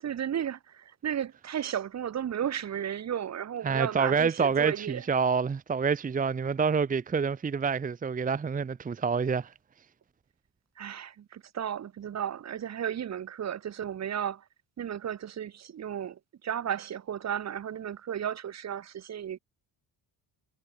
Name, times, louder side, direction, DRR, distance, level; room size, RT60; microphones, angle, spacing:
voice 1, 0.0-5.0 10.8-14.4 14.8-19.4, right 9 dB, 40° right, 1.2 m, -34 dB
voice 2, 3.6-9.5, right 5 dB, 20° right, 0.9 m, -27 dB
cardioid pair, 115°, 41 cm